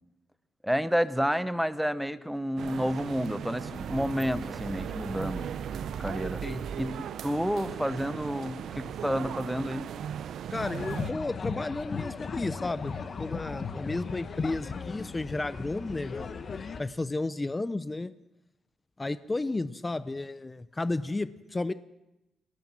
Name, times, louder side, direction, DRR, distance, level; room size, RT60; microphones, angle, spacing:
voice 1, 0.6-5.5 6.0-6.4 6.7-6.9 7.2-9.9, equal, ahead, 13 dB, 1.1 m, -30 dB
sound 1, 2.6-11.1, right 9 dB, 70° right, 0.8 m, -38 dB
sound 2, 3.7-7.5, right 6 dB, 50° right, 1.5 m, -40 dB
voice 2, 10.5-16.3 16.8-18.1 19.0-21.7, left 2 dB, 15° left, 14 dB, 0.8 m, -33 dB
sound 3, 10.6-16.8, left 5 dB, 40° left, 1.6 m, -36 dB
24.0 x 18.5 x 7.6 m, 0.94 s
cardioid pair, 130°, 0 cm